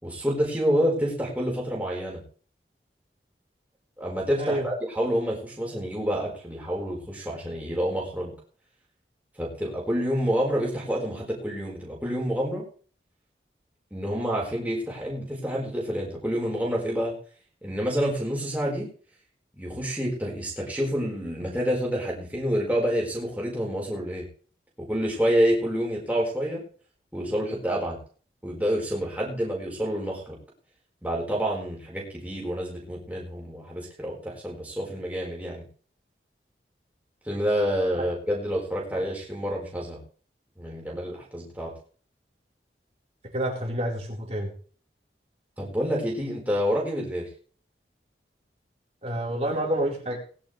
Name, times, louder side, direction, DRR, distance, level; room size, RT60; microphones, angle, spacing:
voice 1, 0.0-2.2 4.0-8.3 9.4-12.6 13.9-17.1 17.6-18.9 19.5-24.3 24.8-26.6 27.1-28.0 28.4-30.4 31.0-35.7 37.2-40.0 40.6-41.7 45.6-47.3, equal, 10° right, -4 dB, 4.8 m, -28 dB
voice 2, 43.3-44.5 49.0-50.2, right 1 dB, 35° right, -2 dB, 4.4 m, -28 dB
20.0 x 11.5 x 3.4 m, 0.43 s
head